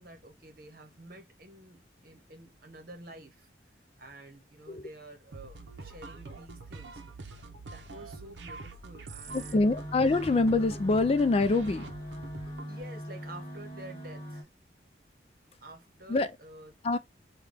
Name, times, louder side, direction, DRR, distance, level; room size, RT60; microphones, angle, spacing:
voice 1, 0.0-3.5 4.0-7.0 7.6-9.8 12.7-14.5 15.6-16.8, right 1 dB, 55° right, 1.1 m, -49 dB
sound 1, 5.3-12.7, right 3 dB, 85° right, 0.6 m, -45 dB
voice 2, 9.3-11.9 16.1-16.3 16.8-17.0, left 3 dB, 35° left, 0.3 m, -25 dB
sound 2, 9.3-14.4, equal, 20° left, 1.8 m, -41 dB
3.5 x 2.3 x 3.2 m
head